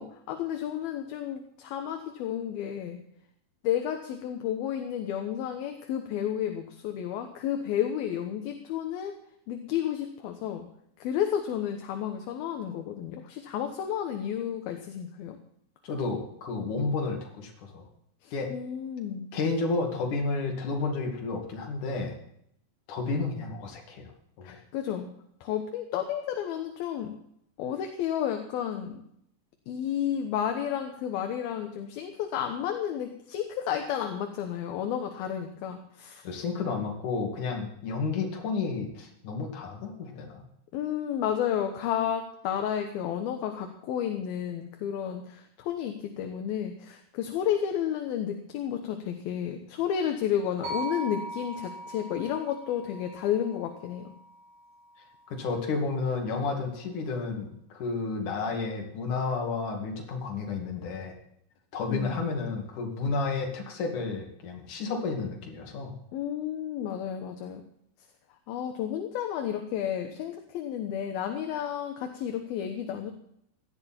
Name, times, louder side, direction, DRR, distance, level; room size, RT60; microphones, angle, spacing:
voice 1, 0.0-3.0 3.6-9.1 9.5-10.7 11.0-15.4 18.2-19.3 24.4-25.1 25.4-27.2 27.6-29.0 29.7-36.2 40.7-54.1 61.9-62.3 66.1-67.6 68.5-73.1, left 9 dB, 75° left, 5 dB, 2.7 m, -31 dB
voice 2, 15.8-17.9 18.3-18.5 19.3-22.2 22.9-24.1 24.4-24.6 36.2-40.4 55.3-61.1 61.7-65.9, left 4 dB, 55° left, 1 dB, 3.6 m, -31 dB
sound 1, 50.6-54.8, right 2 dB, 85° right, 7.2 m, -40 dB
17.0 x 13.0 x 4.4 m, 0.73 s
omnidirectional pair, 4.7 m